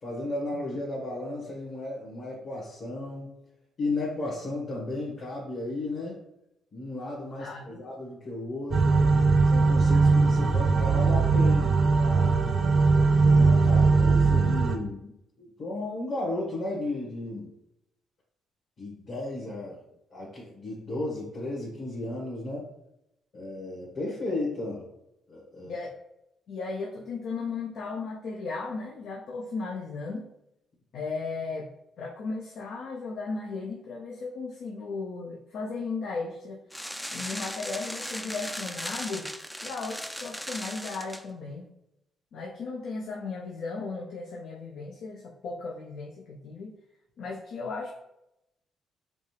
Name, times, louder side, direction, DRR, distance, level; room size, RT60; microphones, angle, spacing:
voice 1, 0.0-3.4 3.8-6.2 6.7-9.1 9.4-12.4 13.2-17.5 18.8-19.8 20.1-22.7 23.3-24.9 25.3-25.8, left 2 dB, 50° left, -7 dB, 1.6 m, -34 dB
sound 1, 8.7-14.8, right 4 dB, 45° right, 0.6 m, -20 dB
voice 2, 26.5-30.3 30.9-31.7 32.0-36.6 37.1-39.3 39.6-41.7 42.3-46.7 47.2-47.9, left 4 dB, 70° left, -1 dB, 0.6 m, -36 dB
sound 2, 36.7-41.2, equal, ahead, 0.3 m, -37 dB
5.1 x 2.4 x 3.3 m, 0.83 s
cardioid pair, 90°, 0 cm